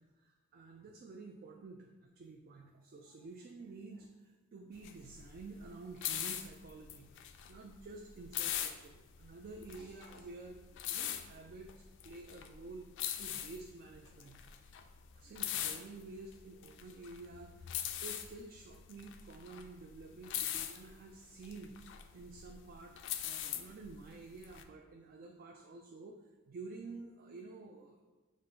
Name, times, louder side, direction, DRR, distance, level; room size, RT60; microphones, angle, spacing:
voice 1, 0.0-14.4 15.1-21.8 22.1-28.0, right 3 dB, 45° right, 2 dB, 0.3 m, -51 dB
sound 1, 4.8-24.6, left 10 dB, 60° left, 0.3 m, -42 dB
5.1 x 2.5 x 3.6 m, 1.2 s
head